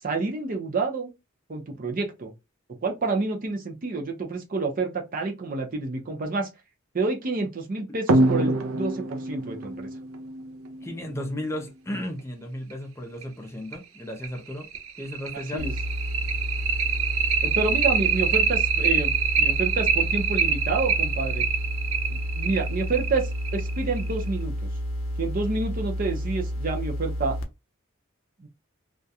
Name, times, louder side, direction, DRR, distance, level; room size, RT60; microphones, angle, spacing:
voice 1, 0.0-1.1 1.5-2.3 2.8-6.5 6.9-9.9 15.5-15.7 17.4-21.4 22.1-24.5 25.2-27.4 28.4-28.5, right 3 dB, 45° right, 0.6 m, -29 dB
sound 1, 8.1-11.2 12.7-12.8 13.2-13.3 13.7-13.8 14.2-24.3, right 5 dB, 90° right, 0.4 m, -25 dB
voice 2, 10.8-14.7 15.0-15.7, left 1 dB, 15° left, 0.5 m, -34 dB
sound 2, 15.6-27.4, equal, 75° left, 0.6 m, -30 dB
2.4 x 2.1 x 2.7 m
head